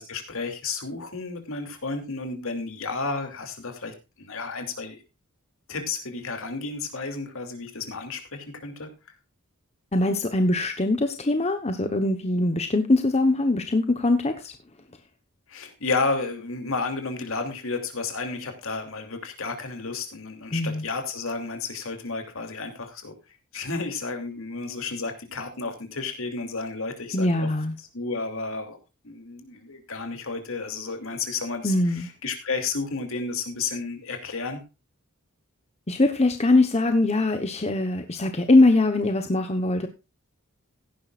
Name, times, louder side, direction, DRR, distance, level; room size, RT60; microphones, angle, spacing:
voice 1, 0.0-5.0 5.7-8.9 15.5-23.2 23.5-27.5 27.9-28.8 29.0-34.6, left 4 dB, 65° left, 6 dB, 2.9 m, -32 dB
voice 2, 9.9-14.5 20.5-20.8 27.1-27.7 31.6-32.1 35.9-39.9, left 2 dB, 30° left, 7 dB, 1.0 m, -22 dB
16.5 x 11.0 x 2.5 m, 0.27 s
head